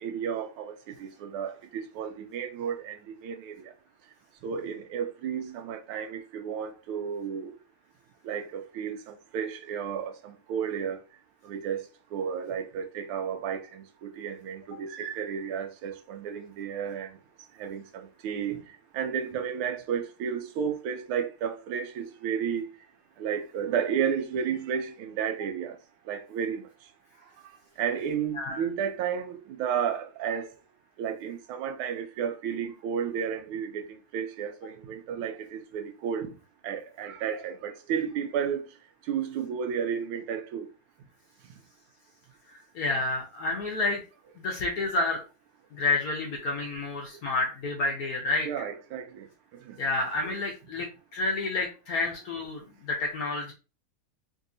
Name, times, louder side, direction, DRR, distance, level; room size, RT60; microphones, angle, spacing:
voice 1, 0.0-3.7 4.4-7.6 8.2-11.0 11.4-11.8 12.1-17.2 17.6-22.7 23.2-25.8 26.1-26.6 27.8-30.5 31.0-36.3 36.6-38.7 39.0-40.7 48.4-49.3 49.5-49.8 50.2-50.4, right 7 dB, 85° right, 1.5 m, -32 dB
voice 2, 28.4-28.7 42.7-44.0 44.4-45.2 45.7-48.5 49.8-53.5, left 3 dB, 65° left, 0.9 m, -29 dB
3.9 x 2.7 x 2.6 m
omnidirectional pair, 2.3 m